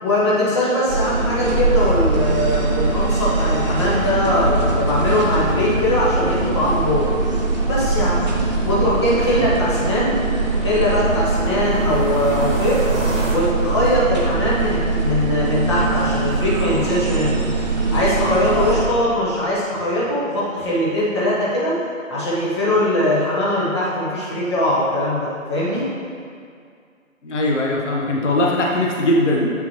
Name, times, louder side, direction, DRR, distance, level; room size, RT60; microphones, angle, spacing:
voice 1, 0.0-4.5 4.8-7.1 7.7-8.2 8.6-10.1 10.6-12.8 13.3-17.4 17.9-21.8 22.1-25.9, left 1 dB, 20° left, -8 dB, 0.9 m, -21 dB
sound 1, 0.9-18.8, right 3 dB, 30° right, 0.9 m, -21 dB
sound 2, 8.2-13.4, equal, 75° right, 1.5 m, -33 dB
voice 2, 27.2-29.5, left 1 dB, 60° left, -2 dB, 1.0 m, -20 dB
8.0 x 5.8 x 2.9 m, 2.2 s
figure-of-eight pair, 145°, 40 cm